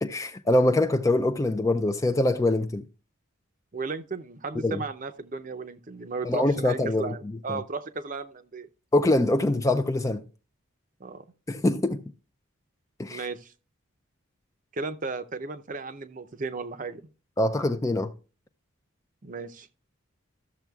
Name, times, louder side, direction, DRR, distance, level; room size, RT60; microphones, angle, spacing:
voice 1, 0.0-2.8 4.6-4.8 6.2-7.1 7.5-7.6 8.9-10.2 11.5-12.0 13.0-13.2 17.4-18.1, left 2 dB, 15° left, 0.3 m, -24 dB
voice 2, 3.7-8.7 11.0-11.2 13.1-13.5 14.7-17.0 19.2-19.7, right 4 dB, 35° right, 0.6 m, -35 dB
13.5 x 7.0 x 2.3 m
head